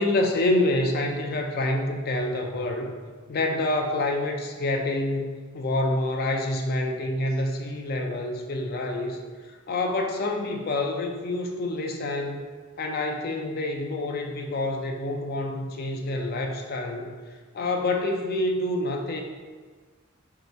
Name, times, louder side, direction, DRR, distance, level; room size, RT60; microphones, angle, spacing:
voice 1, 0.0-2.9 3.3-9.2 9.7-12.4 12.8-17.1 17.5-19.2, left 2 dB, 50° left, 3 dB, 0.4 m, -27 dB
3.1 x 2.8 x 4.3 m, 1.5 s
head